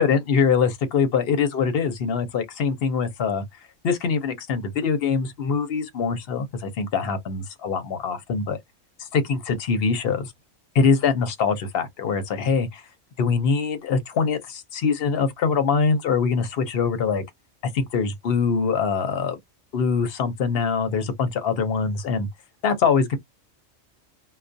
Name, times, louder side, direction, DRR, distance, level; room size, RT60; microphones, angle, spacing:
voice 1, 0.0-3.4 3.8-8.6 9.0-10.3 10.7-12.8 13.2-17.2 17.7-19.4 19.7-22.3 22.6-23.2, left 5 dB, 60° left, 0.7 m, -23 dB
2.3 x 2.2 x 2.5 m
omnidirectional pair, 1.3 m